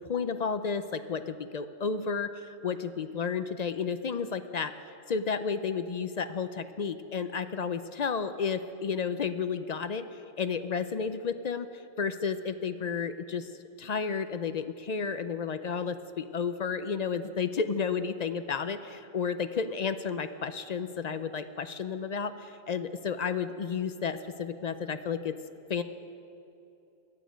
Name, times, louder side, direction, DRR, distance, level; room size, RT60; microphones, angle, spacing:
voice 1, 0.1-4.7 5.1-13.5 13.8-25.3 25.7-25.8, left 6 dB, 50° left, 11 dB, 0.5 m, -32 dB
18.0 x 11.5 x 5.1 m, 2.8 s
omnidirectional pair, 1.1 m